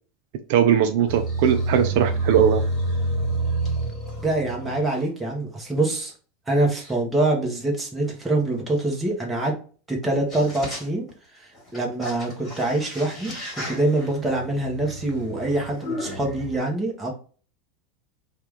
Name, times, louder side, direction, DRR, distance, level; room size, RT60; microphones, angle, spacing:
voice 1, 0.5-2.6, right 9 dB, 55° right, 7 dB, 0.4 m, -19 dB
sound 1, 1.1-5.0 5.8-5.9 6.8-6.9 8.9-9.0 10.0-10.1 10.3-11.1 11.5-16.6, right 2 dB, 20° left, 1.7 m, -29 dB
voice 2, 4.2-6.1 6.5-9.5 9.9-11.1 11.3-13.4 13.7-17.1, right 2 dB, 5° right, -1 dB, 1.0 m, -25 dB
4.7 x 2.4 x 3.4 m, 0.40 s
supercardioid pair, 170°, 0 cm